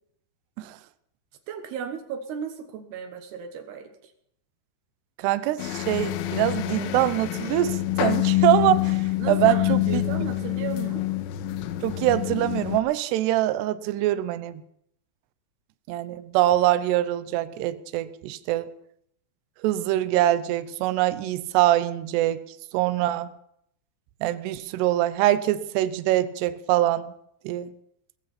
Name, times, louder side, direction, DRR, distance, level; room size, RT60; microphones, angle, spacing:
voice 1, 1.5-3.9 9.2-11.0, right 7 dB, 65° right, 7 dB, 2.8 m, -35 dB
voice 2, 5.2-9.0 9.3-10.0 11.8-14.6 15.9-18.7 19.6-22.4 22.7-23.3 24.2-27.1 27.4-27.7, right 14 dB, 90° right, 12 dB, 2.3 m, -24 dB
sound 1, 5.6-12.8, left 15 dB, 90° left, 3.5 m, -26 dB
19.0 x 15.5 x 4.3 m, 0.70 s
omnidirectional pair, 5.9 m